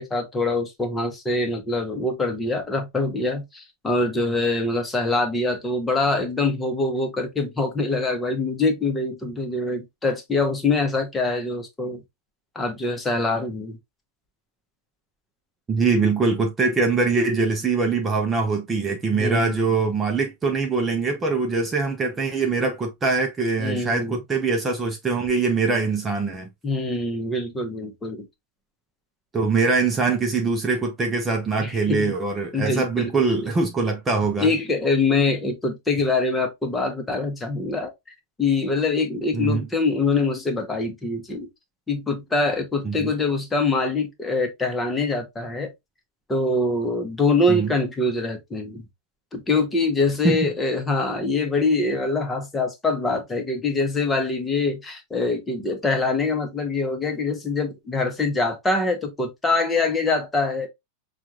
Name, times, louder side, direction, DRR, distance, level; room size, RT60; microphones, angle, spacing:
voice 1, 0.0-12.0 12.5-13.8 19.1-19.6 23.6-24.2 26.6-28.3 31.6-32.1 32.5-33.1 34.4-37.9 38.4-41.5 41.9-45.7 46.3-48.8 49.3-60.7, left 3 dB, 15° left, 1.1 m, -24 dB
voice 2, 15.7-26.5 29.3-34.5 39.3-39.7 42.8-43.1 47.5-47.7 50.2-50.5, right 4 dB, 15° right, 0.7 m, -23 dB
5.9 x 2.5 x 2.8 m
figure-of-eight pair, 90°, 0 cm